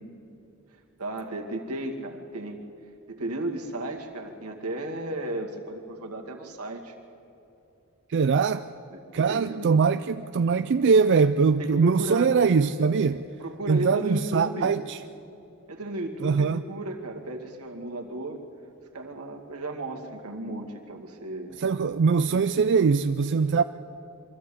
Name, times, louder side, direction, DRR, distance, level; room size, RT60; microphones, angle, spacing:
voice 1, 1.0-2.6 3.1-7.0 8.9-9.7 11.6-12.3 13.4-14.7 15.7-18.4 18.9-21.6, right 1 dB, 85° right, 2.2 m, -34 dB
voice 2, 8.1-8.6 9.1-13.2 13.7-15.0 16.2-16.6 21.6-23.6, right 5 dB, 55° right, 0.4 m, -22 dB
23.5 x 14.0 x 8.5 m
head